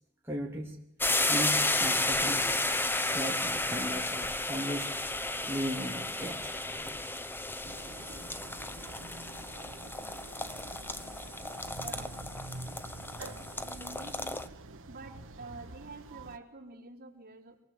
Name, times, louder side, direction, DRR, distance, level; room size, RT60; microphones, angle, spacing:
voice 1, 0.2-0.8 1.3-2.7 3.1-4.9 5.5-6.6 11.8-11.9 13.8-13.9, right 1 dB, 10° right, -3 dB, 2.9 m, -37 dB
sound 1, 1.0-14.5, left 2 dB, 10° left, 0.9 m, -33 dB
sound 2, 7.6-16.4, right 2 dB, 60° right, 1.4 m, -47 dB
voice 2, 11.8-12.4 13.6-14.4 14.7-17.6, right 3 dB, 45° right, -1 dB, 3.7 m, -48 dB
26.5 x 20.0 x 8.0 m, 0.76 s
head